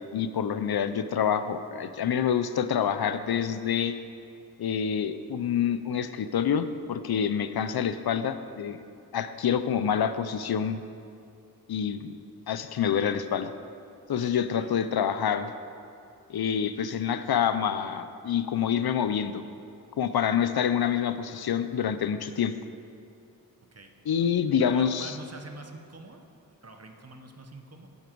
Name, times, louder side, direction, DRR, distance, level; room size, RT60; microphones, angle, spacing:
voice 1, 0.0-4.0 4.6-8.8 9.1-10.8 11.7-12.1 12.5-13.5 14.1-15.5 16.3-19.4 20.0-22.5 24.1-25.2, left 8 dB, 80° left, 11 dB, 0.6 m, -27 dB
voice 2, 24.6-26.2 26.6-27.9, right 2 dB, 40° right, 4 dB, 1.1 m, -45 dB
11.5 x 8.2 x 4.6 m, 2.4 s
wide cardioid pair, 60°, 37 cm